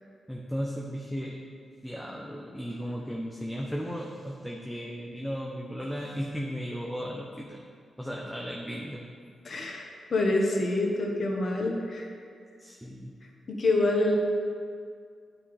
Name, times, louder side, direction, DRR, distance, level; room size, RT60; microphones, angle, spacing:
voice 1, 0.3-1.4 1.8-7.6 8.0-9.0 12.6-13.1, equal, 5° right, -2 dB, 0.9 m, -35 dB
voice 2, 9.4-12.1 13.5-14.2, left 2 dB, 55° left, 0 dB, 1.3 m, -26 dB
10.0 x 5.0 x 3.5 m, 2.3 s
supercardioid pair, 45°, 0 cm